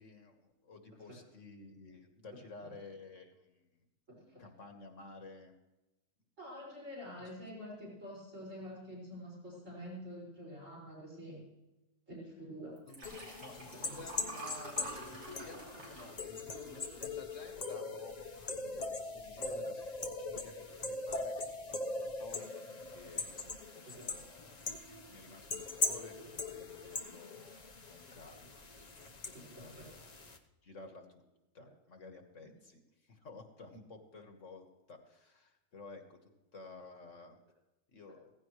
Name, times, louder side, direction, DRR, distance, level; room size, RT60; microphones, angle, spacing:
voice 1, 0.0-3.8 4.2-5.5 7.2-7.3 12.9-15.6 15.9-18.2 18.6-19.9 20.2-21.4 21.8-30.1 30.6-31.2 31.5-36.2 36.5-37.4 37.9-38.3, left 3 dB, 55° left, 5 dB, 1.7 m, -53 dB
voice 2, 4.1-4.4 6.4-11.4 12.1-12.8 13.9-14.0 15.8-15.9 19.6-19.7 23.9-24.1 29.5-29.8, equal, 50° right, -5 dB, 6.0 m, -47 dB
Liquid, 12.8-17.4 17.9-18.2 18.4-18.5, right 2 dB, 80° right, 3.5 m, -48 dB
sound 1, 13.0-30.4, left 3 dB, 30° left, 0.9 m, -41 dB
16.5 x 15.5 x 3.2 m, 1.0 s
omnidirectional pair, 1.6 m